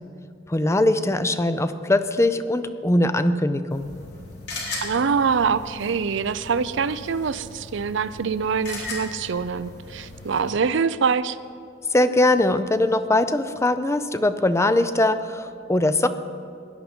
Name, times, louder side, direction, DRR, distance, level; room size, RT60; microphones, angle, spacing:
voice 1, 0.5-3.9 11.9-16.1, left 1 dB, 15° left, 11 dB, 0.5 m, -21 dB
sound 1, 3.7-10.5, left 3 dB, 60° left, 3.1 m, -38 dB
voice 2, 4.8-11.4, right 5 dB, 65° right, 15 dB, 0.5 m, -24 dB
17.0 x 10.5 x 4.4 m, 2.5 s
head